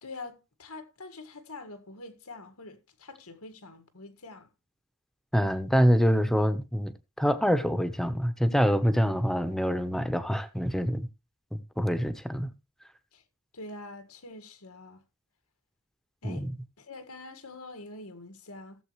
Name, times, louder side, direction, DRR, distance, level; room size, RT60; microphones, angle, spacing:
voice 1, 0.0-4.5 13.1-13.2 13.5-15.0 16.2-16.5 16.8-18.8, left 2 dB, 90° left, 1.9 m, -45 dB
voice 2, 5.3-6.9 7.2-11.1 11.8-12.5 16.2-16.5, equal, ahead, 0.9 m, -25 dB
16.5 x 7.7 x 3.2 m
head